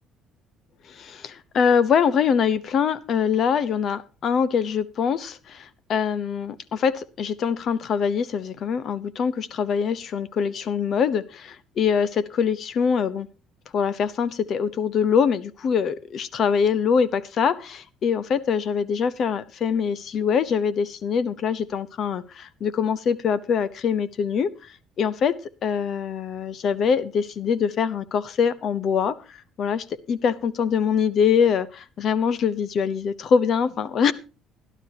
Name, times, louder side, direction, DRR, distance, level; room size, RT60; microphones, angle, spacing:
voice 1, 0.9-13.3 13.7-25.3 25.6-34.1, left 6 dB, 45° left, 18 dB, 0.7 m, -24 dB
17.0 x 12.0 x 2.8 m, 0.32 s
cardioid pair, 150°, 0 cm